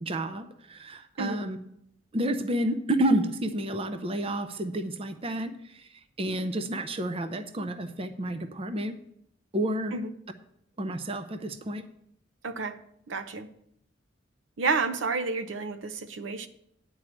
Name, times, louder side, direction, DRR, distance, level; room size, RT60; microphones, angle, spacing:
voice 1, 0.0-1.6 2.1-5.9 6.2-8.9 9.5-9.9 10.8-11.8, right 1 dB, 30° right, 0.6 m, -30 dB
voice 2, 12.4-12.8 13.1-13.5 14.6-16.5, right 4 dB, 85° right, 0.8 m, -30 dB
10.0 x 4.7 x 7.4 m
head